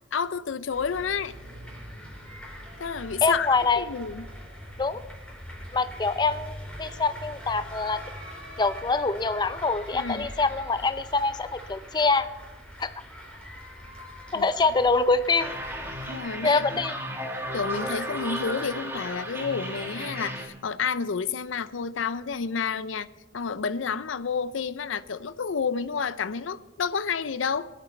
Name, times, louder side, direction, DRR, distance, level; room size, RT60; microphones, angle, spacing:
voice 1, 0.1-1.3 2.8-4.3 9.9-10.3 14.3-14.5 16.1-16.7 17.5-23.1 23.3-27.7, left 6 dB, 80° left, 0.5 m, -30 dB
sound 1, 0.7-16.2, equal, 5° left, 4.2 m, -42 dB
voice 2, 3.2-3.9 4.8-5.0 5.7-8.0 8.6-12.3 12.8-12.9 14.3-15.5 16.4-16.9, left 3 dB, 20° left, 0.5 m, -25 dB
sound 2, 15.4-20.5, equal, 10° right, 1.6 m, -34 dB
23.0 x 8.5 x 4.4 m
head